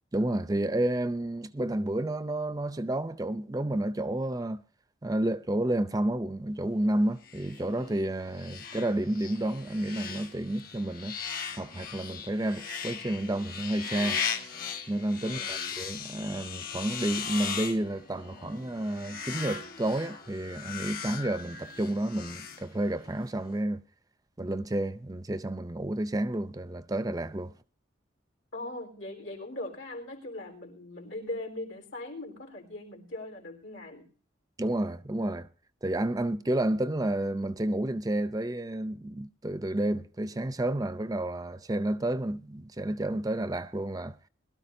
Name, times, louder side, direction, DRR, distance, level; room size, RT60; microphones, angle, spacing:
voice 1, 0.1-4.6 5.0-11.1 11.6-14.2 14.9-23.8 24.4-27.5 34.6-35.5 35.8-44.2, right 1 dB, 20° right, 0.5 m, -30 dB
sound 1, 7.2-23.2, left 7 dB, 45° left, 1.5 m, -38 dB
voice 2, 15.2-15.7 28.5-34.1, left 2 dB, 80° left, 4.0 m, -40 dB
21.5 x 13.0 x 2.7 m
head